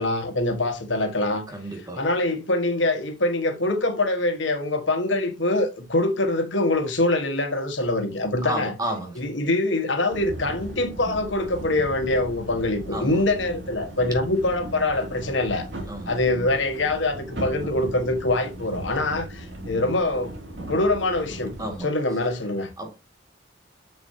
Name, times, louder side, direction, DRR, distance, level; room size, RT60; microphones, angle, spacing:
voice 1, 0.0-1.4 1.9-8.7 9.2-15.7 16.1-20.3 20.7-21.5 21.8-22.7, left 2 dB, 85° left, 1.7 m, -24 dB
voice 2, 1.5-2.0 8.4-9.2 12.9-13.2 15.9-16.1 21.6-21.9 22.8-23.0, right 1 dB, 20° right, 2.2 m, -31 dB
sound 1, 10.1-21.8, right 1 dB, 70° right, 2.8 m, -37 dB
7.1 x 7.0 x 2.9 m
head